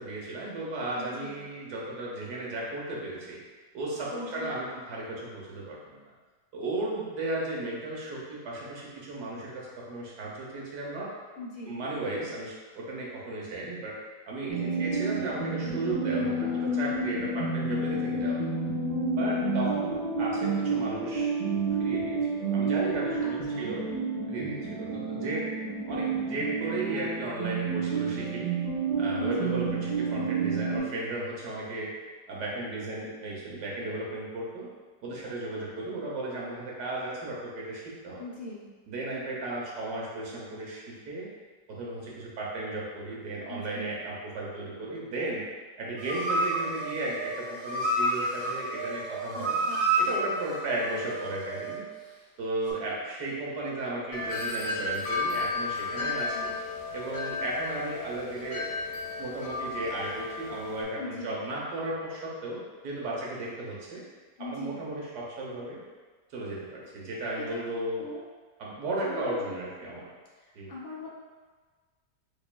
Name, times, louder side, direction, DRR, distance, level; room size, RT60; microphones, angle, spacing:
voice 1, 0.0-3.4 3.7-6.0 6.5-11.1 11.7-14.0 14.3-18.4 19.2-23.8 24.3-25.5 25.9-28.5 29.0-31.9 32.3-34.7 35.0-38.2 38.9-41.3 41.7-45.4 45.8-49.6 50.0-51.8 52.4-56.5 56.9-58.7 59.2-64.0 64.4-65.8 66.3-68.1 68.6-70.1 70.5-70.7, right 2 dB, 70° right, -4 dB, 1.4 m, -35 dB
voice 2, 0.9-1.4 4.1-4.5 11.4-11.8 14.6-14.9 18.1-18.6 23.2-23.7 29.2-29.6 38.2-38.6 43.5-43.9 49.3-49.8 56.0-56.5 61.0-61.3 64.4-64.8 67.3-68.2 69.0-69.5 70.4-71.1, left 2 dB, 65° left, -6 dB, 0.5 m, -41 dB
sound 1, 14.5-30.8, right 3 dB, 50° right, 1.1 m, -30 dB
sound 2, 46.0-51.9 52.6-52.7, right 2 dB, 85° right, 1.5 m, -30 dB
Wind chime, 54.1-60.8, left 3 dB, 85° left, 1.3 m, -33 dB
5.3 x 2.5 x 2.2 m, 1.4 s
omnidirectional pair, 1.8 m